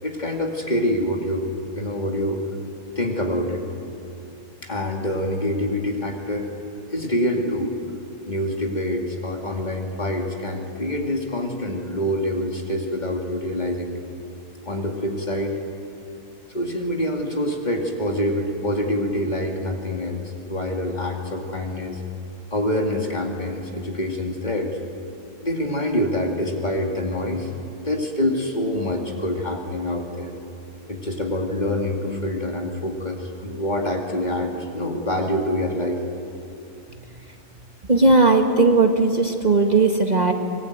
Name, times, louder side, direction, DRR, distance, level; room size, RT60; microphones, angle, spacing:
voice 1, 0.0-1.5 1.7-2.4 3.0-3.6 4.6-6.5 6.9-7.7 8.3-14.0 14.6-15.6 16.5-20.2 20.5-22.0 22.5-24.7 25.4-27.5 27.8-30.3 30.9-36.0, left 1 dB, 35° left, 1 dB, 2.6 m, -26 dB
voice 2, 37.9-40.3, right 3 dB, 35° right, 3 dB, 1.7 m, -17 dB
23.0 x 22.0 x 9.4 m, 2.7 s
omnidirectional pair, 1.4 m